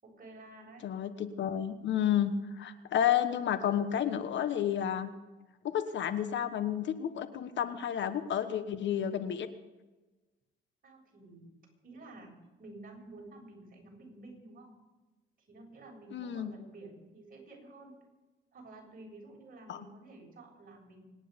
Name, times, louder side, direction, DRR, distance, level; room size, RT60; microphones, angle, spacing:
voice 1, 0.0-0.8 10.8-11.5 11.8-14.7 15.5-17.9 18.5-21.0, right 2 dB, 45° right, -1 dB, 7.5 m, -51 dB
voice 2, 0.8-5.1 5.6-9.5 16.1-16.5 19.7-19.8, left 9 dB, 65° left, 11 dB, 1.2 m, -31 dB
25.5 x 10.5 x 5.2 m, 1.1 s
cardioid pair, 90°, 20 cm